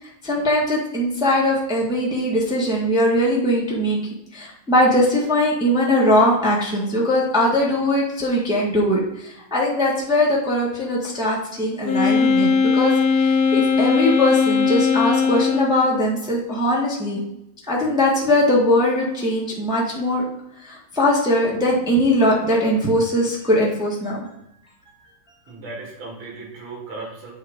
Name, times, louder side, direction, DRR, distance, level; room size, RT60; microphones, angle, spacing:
voice 1, 0.0-4.0 4.3-17.2 17.7-20.2 20.6-24.2, left 1 dB, ahead, -4 dB, 1.3 m, -20 dB
Wind instrument woodwind instrument, 11.8-15.9, left 5 dB, 60° left, 1.0 m, -19 dB
voice 2, 25.5-27.3, right 3 dB, 85° right, -1 dB, 2.7 m, -36 dB
8.4 x 3.6 x 5.1 m, 0.82 s
omnidirectional pair, 2.2 m